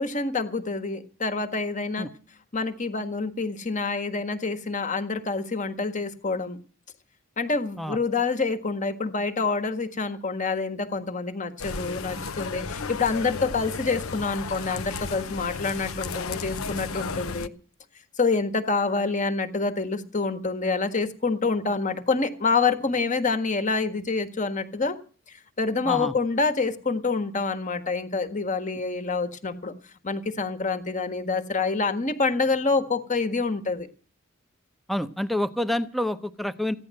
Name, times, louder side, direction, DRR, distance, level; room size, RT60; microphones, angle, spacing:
voice 1, 0.0-2.1 2.5-6.6 7.4-17.5 18.2-25.0 25.3-29.7 30.0-33.9, left 4 dB, 35° left, 8 dB, 1.5 m, -27 dB
sound 1, 11.6-17.5, left 4 dB, 80° left, 0.9 m, -34 dB
voice 2, 34.9-36.7, left 1 dB, ahead, 10 dB, 0.7 m, -28 dB
15.5 x 10.5 x 7.7 m, 0.39 s
head